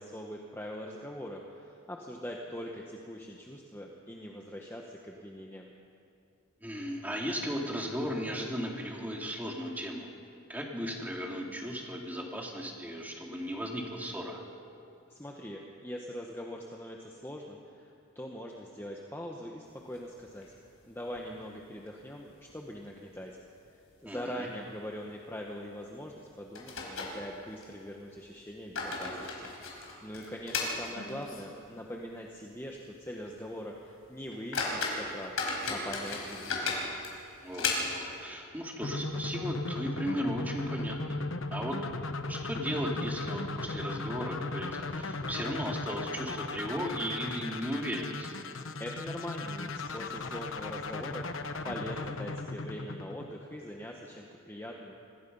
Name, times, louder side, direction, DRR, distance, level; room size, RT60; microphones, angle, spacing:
voice 1, 0.0-5.7 15.1-20.5 20.9-23.4 23.7-35.4 35.7-36.8 48.8-55.0, equal, 10° left, 0 dB, 1.1 m, -42 dB
voice 2, 6.6-10.1 10.5-14.4 24.1-24.5 37.4-37.8 38.2-41.2 41.5-41.9 42.3-48.3, equal, 10° right, -1 dB, 2.6 m, -36 dB
sound 1, 19.8-20.8 21.1-21.2 21.6-21.7 22.3-22.8 23.0-23.2 23.8-24.0 24.3-24.5 25.8-25.9 26.5-27.7 28.4-31.6 31.9-32.0 32.6-32.7 33.1-33.3 33.8-33.9 34.3-38.2, left 3 dB, 90° left, 4.6 m, -35 dB
sound 2, 38.8-53.7, left 2 dB, 70° left, 1.0 m, -37 dB
25.5 x 19.0 x 5.5 m, 2.5 s
head